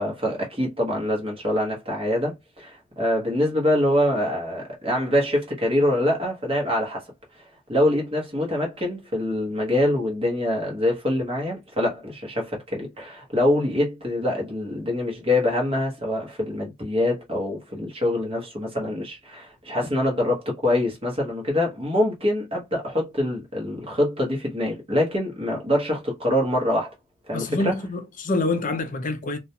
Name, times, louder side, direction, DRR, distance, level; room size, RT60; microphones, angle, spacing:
voice 1, 0.0-7.0 7.7-26.9 27.3-27.8, left 1 dB, 25° right, 0.8 m, -24 dB
voice 2, 27.3-29.4, left 2 dB, 35° left, 0.4 m, -26 dB
2.4 x 2.1 x 2.7 m
head